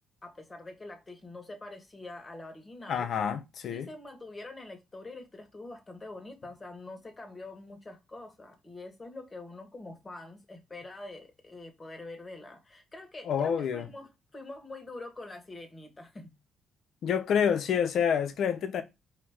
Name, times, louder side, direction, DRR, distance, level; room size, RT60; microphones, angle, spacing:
voice 1, 0.2-3.2 3.7-16.3, left 2 dB, 25° left, 1.6 m, -45 dB
voice 2, 2.9-3.9 13.3-13.9 17.0-18.8, left 7 dB, 70° left, 0.8 m, -28 dB
4.7 x 2.9 x 3.6 m
cardioid pair, 90°, 0 cm